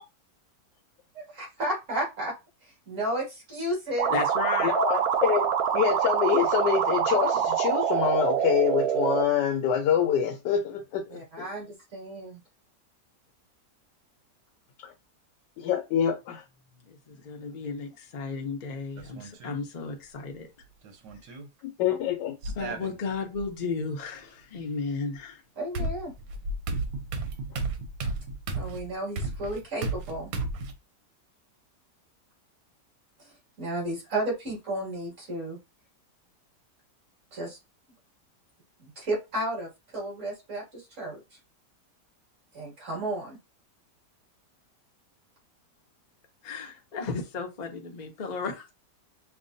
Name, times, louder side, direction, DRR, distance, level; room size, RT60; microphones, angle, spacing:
voice 1, 1.1-2.3 2.6-4.1 11.1-12.4 21.9-22.0 25.6-26.1 28.5-30.3 33.2-33.3 33.6-35.6 37.3-37.6 38.8-41.2 42.5-43.4, right 1 dB, 45° right, -4 dB, 2.6 m, -33 dB
sound 1, 4.0-9.2, right 8 dB, 70° right, 1.0 m, -25 dB
voice 2, 4.1-4.7 16.9-20.5 22.5-25.4 46.4-48.7, left 4 dB, 65° left, 2 dB, 0.4 m, -34 dB
voice 3, 4.6-11.2 14.8-14.9 15.6-16.4 21.6-22.4 25.8-25.9, left 8 dB, 85° left, 4 dB, 1.2 m, -26 dB
sound 2, 19.0-19.6 20.8-21.5 22.4-23.4 25.1-25.2 25.7-30.7, right 2 dB, 85° right, 1.4 m, -33 dB
5.7 x 2.1 x 2.6 m, 0.24 s
omnidirectional pair, 1.8 m